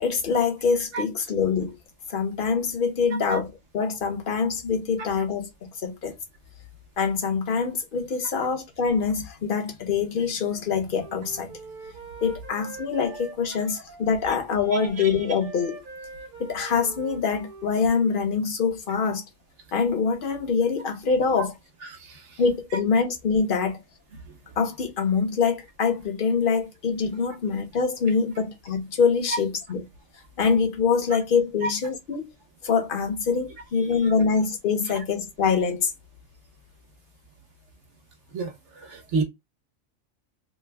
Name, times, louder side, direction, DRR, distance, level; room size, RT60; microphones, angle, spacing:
voice 1, 0.0-1.8 2.1-3.5 3.7-6.1 7.0-11.5 12.2-15.8 16.4-19.2 19.7-21.5 22.4-23.8 24.6-29.8 30.4-32.2 32.6-35.9, left 5 dB, 45° left, 0.9 m, -24 dB
Wind instrument woodwind instrument, 10.5-14.1 14.5-18.1, right 3 dB, 45° right, 1.1 m, -44 dB
voice 2, 14.7-15.2 21.8-22.4 24.3-24.4 31.6-31.7 33.8-34.1 38.3-39.2, right 3 dB, 60° right, 1.3 m, -31 dB
3.3 x 2.0 x 3.4 m
omnidirectional pair, 1.4 m